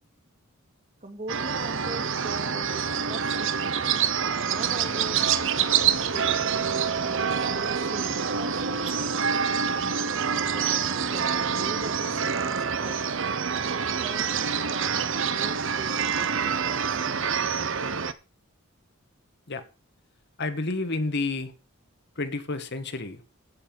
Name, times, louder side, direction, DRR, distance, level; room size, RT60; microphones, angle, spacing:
voice 1, 1.0-3.9 4.5-5.2 5.6-6.4 7.0-9.0 9.3-9.9 10.5-13.1 14.0-17.3, right 2 dB, 35° right, 2.5 m, -41 dB
sound 1, 1.3-18.1, right 6 dB, 60° right, 0.9 m, -26 dB
voice 2, 20.4-21.5 22.1-23.2, left 3 dB, 50° left, 1.6 m, -30 dB
15.5 x 6.8 x 5.4 m
head